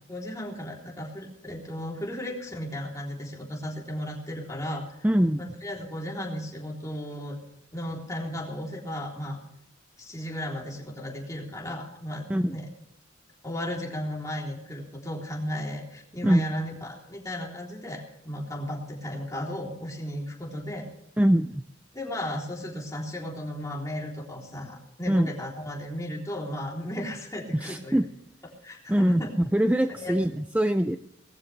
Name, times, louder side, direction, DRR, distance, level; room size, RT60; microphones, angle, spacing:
voice 1, 0.1-5.0 5.4-7.4 7.7-9.4 10.0-12.2 12.5-12.7 13.4-20.9 21.9-28.1 28.6-29.3 29.9-30.1, equal, 15° left, -2 dB, 3.6 m, -35 dB
voice 2, 5.0-5.5 12.3-12.6 16.2-16.4 21.2-21.6 25.1-25.3 27.6-28.1 28.9-29.3 29.5-31.0, equal, 10° right, 9 dB, 0.4 m, -23 dB
19.0 x 15.0 x 3.4 m, 0.80 s
head